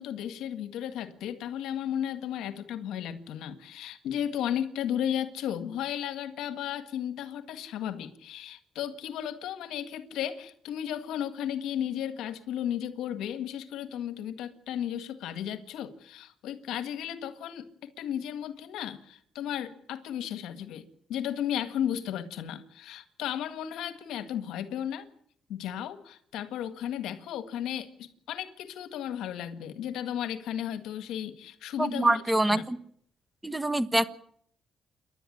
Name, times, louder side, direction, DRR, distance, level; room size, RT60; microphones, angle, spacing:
voice 1, 0.0-17.7 18.0-20.8 21.1-25.1 25.5-32.2 32.5-32.6, left 10 dB, 85° left, 1.8 m, -34 dB
voice 2, 31.8-32.8 33.4-34.0, right 1 dB, 10° right, 1.4 m, -25 dB
28.5 x 12.0 x 10.0 m
cardioid pair, 90°, 0 cm